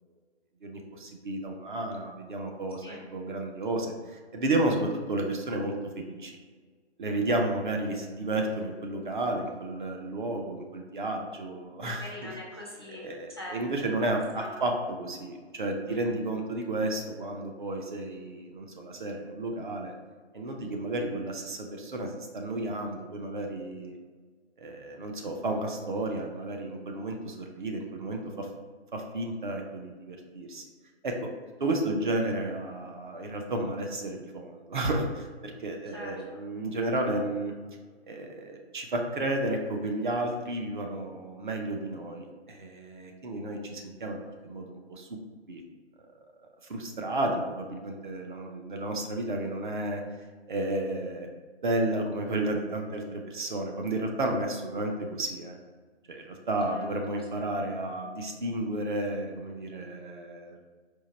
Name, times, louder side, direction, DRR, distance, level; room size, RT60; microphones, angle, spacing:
voice 1, 0.6-6.3 7.0-12.3 12.9-19.9 20.3-24.0 24.6-28.5 28.9-30.6 31.0-31.3 31.6-37.5 38.1-44.2 44.4-45.1 45.5-45.6 46.7-50.0 50.5-51.3 51.6-55.6 56.1-60.6, right 2 dB, 45° right, 2 dB, 0.6 m, -32 dB
voice 2, 11.8-13.0 13.4-13.6 14.4-14.6 15.9-16.2 35.9-36.2 56.7-56.9, left 1 dB, 25° left, -5 dB, 0.4 m, -42 dB
4.5 x 2.5 x 4.2 m, 1.5 s
figure-of-eight pair, 150°, 35 cm